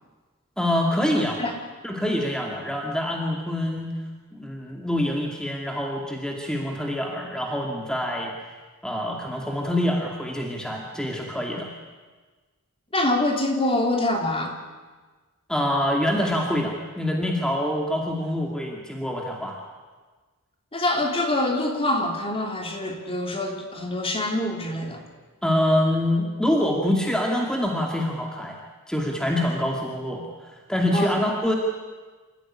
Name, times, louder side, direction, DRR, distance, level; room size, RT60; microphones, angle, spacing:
voice 1, 0.6-1.4 1.8-4.0 4.3-8.3 8.8-11.7 15.5-19.6 25.4-28.6 28.9-31.5, left 1 dB, 5° left, 0 dB, 2.4 m, -25 dB
voice 2, 12.9-14.6 20.7-25.0 30.9-31.2, left 1 dB, 25° left, 3 dB, 3.3 m, -25 dB
27.5 x 14.5 x 10.0 m, 1.4 s
head